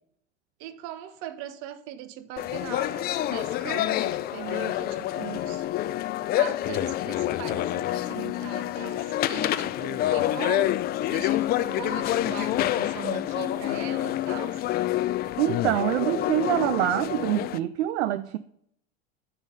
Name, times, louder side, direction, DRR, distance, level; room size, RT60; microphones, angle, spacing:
voice 1, 0.6-5.7 6.4-10.8 11.1-14.6, right 12 dB, 50° right, 1.0 m, -39 dB
sound 1, 2.4-17.6, left 14 dB, 30° left, 0.3 m, -27 dB
voice 2, 15.4-18.4, right 13 dB, 70° right, 0.5 m, -25 dB
7.1 x 5.6 x 6.6 m
hypercardioid pair, 90°, 35 cm